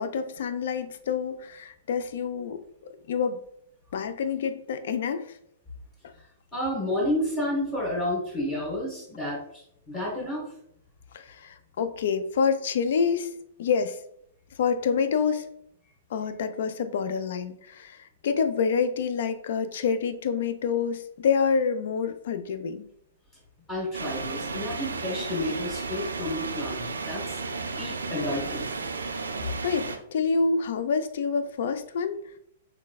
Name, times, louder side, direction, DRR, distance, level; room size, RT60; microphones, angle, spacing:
voice 1, 0.0-3.4 3.9-5.4 6.0-6.1 11.1-13.3 13.6-14.0 14.6-15.5 16.1-22.9 29.2-29.4 29.6-32.2, left 6 dB, 55° left, 10 dB, 0.3 m, -27 dB
voice 2, 6.5-10.5 23.7-27.4 27.8-28.6, left 1 dB, 20° left, -6 dB, 1.3 m, -30 dB
sound 1, 23.9-30.0, right 4 dB, 70° right, 0.3 m, -33 dB
3.8 x 3.2 x 2.2 m, 0.71 s
figure-of-eight pair, 105°, 0 cm